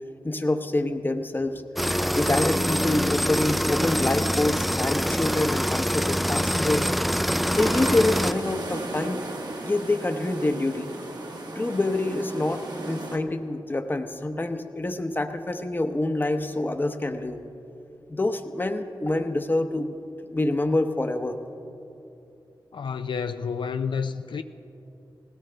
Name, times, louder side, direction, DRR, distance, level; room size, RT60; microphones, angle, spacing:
voice 1, 0.2-1.6 2.1-6.9 7.5-9.2 9.6-10.9 11.5-17.4 18.1-20.0 20.3-21.4, left 2 dB, 25° left, 0.8 m, -26 dB
sound 1, 1.8-8.3, equal, ahead, 0.3 m, -25 dB
sound 2, 7.5-13.2, right 2 dB, 60° right, 1.2 m, -36 dB
voice 2, 22.7-24.4, left 6 dB, 75° left, 0.4 m, -29 dB
19.0 x 17.0 x 3.4 m
wide cardioid pair, 95°, 8 cm